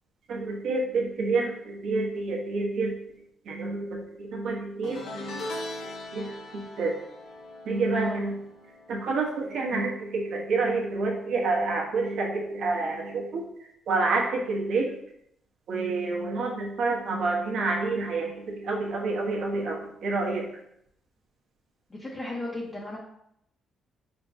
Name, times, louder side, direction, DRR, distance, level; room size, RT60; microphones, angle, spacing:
voice 1, 0.3-2.9 3.4-5.4 5.8-6.9 7.6-8.4 8.9-13.4 13.9-15.0 15.7-20.5, right 3 dB, 70° right, -1 dB, 1.0 m, -28 dB
sound 1, 4.8-10.2 10.5-10.9 12.1-12.2, left 1 dB, 90° left, 0.9 m, -41 dB
voice 2, 7.9-8.3 21.9-23.0, left 2 dB, 25° left, -5 dB, 0.8 m, -35 dB
4.3 x 3.7 x 2.7 m, 0.75 s
cardioid pair, 90°, 0 cm